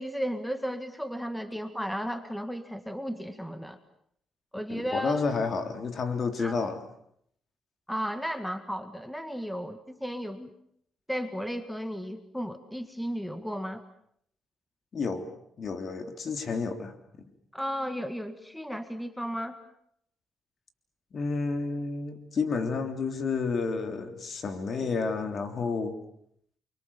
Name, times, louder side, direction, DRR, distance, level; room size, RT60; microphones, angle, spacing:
voice 1, 0.0-3.8 4.5-5.2 6.4-6.6 7.9-10.5 11.1-13.8 17.5-19.6, equal, 5° left, 10 dB, 2.0 m, -34 dB
voice 2, 4.7-6.8 14.9-15.3 15.6-16.9 21.1-26.0, left 4 dB, 50° left, 8 dB, 3.4 m, -30 dB
28.5 x 24.5 x 7.2 m, 0.69 s
cardioid pair, 90°, 0 cm